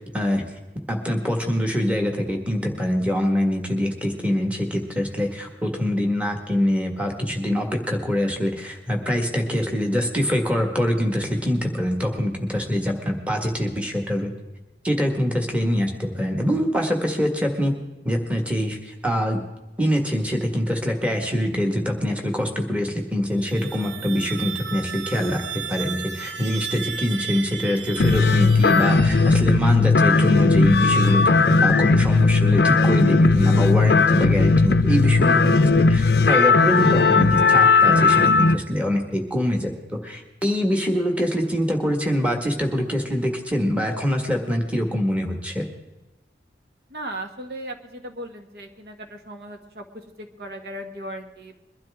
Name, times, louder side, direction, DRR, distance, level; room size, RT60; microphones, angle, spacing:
voice 1, 0.9-14.3 14.8-17.7 18.1-19.4 19.8-25.4 25.7-45.7, equal, 10° right, 1 dB, 1.7 m, -24 dB
sound 1, 23.3-29.9, right 8 dB, 90° right, 0.8 m, -34 dB
sound 2, 28.0-38.5, left 4 dB, 65° left, 0.5 m, -17 dB
voice 2, 46.9-51.6, right 1 dB, 60° right, 5 dB, 1.4 m, -37 dB
22.5 x 12.0 x 3.6 m, 1.1 s
head